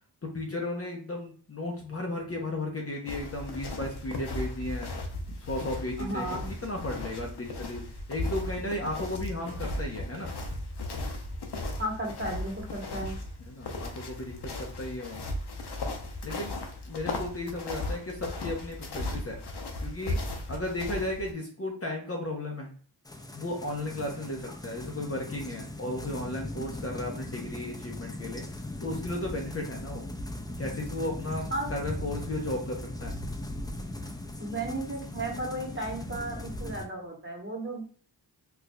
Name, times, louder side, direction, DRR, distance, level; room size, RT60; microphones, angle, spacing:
voice 1, 0.2-4.9 5.3-7.8 8.1-10.3 13.5-15.2 16.2-16.6 16.9-19.4 19.8-20.2 20.5-22.7 23.3-28.4 28.8-30.0 30.6-31.4 31.7-33.1, left 1 dB, 35° left, 0 dB, 0.7 m, -35 dB
sound 1, 3.1-21.3, left 2 dB, 60° left, 0.7 m, -36 dB
voice 2, 6.0-6.5 11.8-13.1 31.5-31.7 34.4-37.8, right 1 dB, 25° right, -1 dB, 1.1 m, -34 dB
sound 2, 23.1-36.9, left 1 dB, 10° left, 0.3 m, -39 dB
4.5 x 2.4 x 2.2 m, 0.43 s
wide cardioid pair, 80°, 44 cm